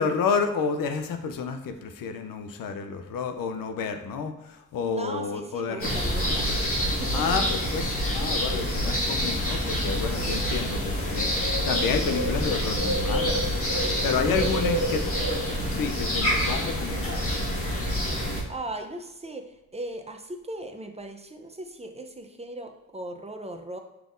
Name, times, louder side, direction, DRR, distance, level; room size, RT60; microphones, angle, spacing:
voice 1, 0.0-5.9 7.1-7.9 8.1-15.0 15.7-17.3, left 5 dB, 90° left, 7 dB, 0.5 m, -30 dB
voice 2, 4.9-6.5 7.0-7.5 9.1-9.2 14.3-14.7 18.5-23.8, right 2 dB, 20° right, 5 dB, 0.6 m, -38 dB
sound 1, 5.8-18.4, equal, 40° left, 1.3 m, -27 dB
5.8 x 3.4 x 2.5 m, 0.99 s
cardioid pair, 55°, 33 cm